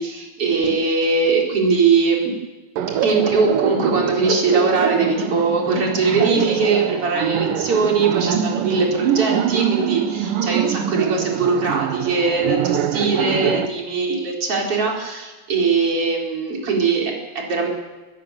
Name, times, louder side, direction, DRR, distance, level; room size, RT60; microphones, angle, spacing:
voice 1, 0.0-2.3 3.0-17.7, right 4 dB, 40° right, 0 dB, 4.8 m, -21 dB
Laughter, 2.8-13.7, right 9 dB, 75° right, 2.7 m, -23 dB
24.5 x 16.5 x 7.2 m, 1.2 s
omnidirectional pair, 4.0 m